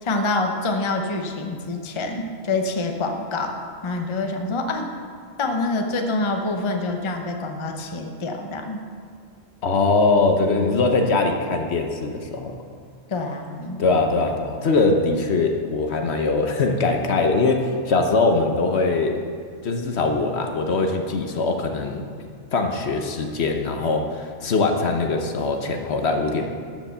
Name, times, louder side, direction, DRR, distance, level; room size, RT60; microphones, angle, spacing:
voice 1, 0.0-3.6 3.8-4.9 5.4-8.8 13.1-13.8, left 2 dB, 30° left, 4 dB, 0.7 m, -26 dB
voice 2, 9.6-12.6 13.8-19.2 19.6-22.0 22.5-26.5, left 3 dB, 60° left, 4 dB, 1.1 m, -22 dB
12.5 x 5.2 x 6.7 m, 2.1 s
omnidirectional pair, 1.3 m